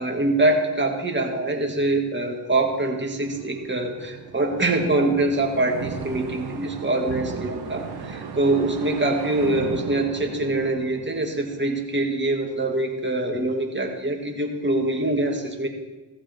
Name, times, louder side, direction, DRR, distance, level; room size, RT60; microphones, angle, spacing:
voice 1, 0.0-15.7, right 2 dB, 25° right, 2 dB, 2.1 m, -24 dB
sound 1, 3.2-12.0, right 6 dB, 55° right, 1.4 m, -36 dB
15.0 x 6.9 x 3.6 m, 1.1 s
hypercardioid pair, 45°, 44 cm